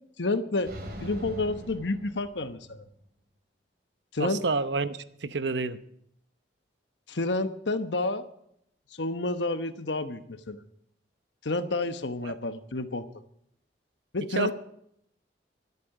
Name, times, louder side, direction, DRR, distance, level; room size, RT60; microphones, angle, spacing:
voice 1, 0.2-0.7 1.0-2.8 4.1-4.4 7.1-8.2 8.9-10.6 11.4-13.1 14.1-14.5, left 2 dB, 90° left, 10 dB, 1.1 m, -29 dB
sound 1, 0.6-2.8, equal, 60° right, 3.4 m, -41 dB
voice 2, 4.2-5.8 12.2-12.3 14.4-14.5, right 4 dB, 80° right, 12 dB, 0.9 m, -29 dB
24.5 x 8.5 x 4.9 m, 0.73 s
head